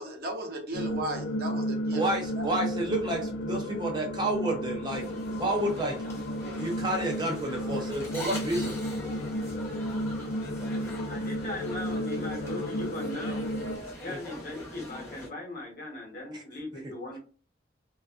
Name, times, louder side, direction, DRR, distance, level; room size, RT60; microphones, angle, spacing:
voice 1, 0.0-2.0 2.3-2.4, right 1 dB, 60° right, 1 dB, 0.7 m, -36 dB
sound 1, 0.7-13.8, equal, 85° left, 0.4 m, -33 dB
voice 2, 1.9-6.0 6.6-8.8 14.1-14.2 16.3-16.4, right 1 dB, 25° right, 1 dB, 0.3 m, -30 dB
sound 2, 4.9-15.3, left 1 dB, 15° left, 0.6 m, -42 dB
voice 3, 11.1-13.4 14.0-17.2, left 2 dB, 55° left, 0 dB, 0.8 m, -39 dB
2.5 x 2.3 x 2.3 m, 0.39 s
head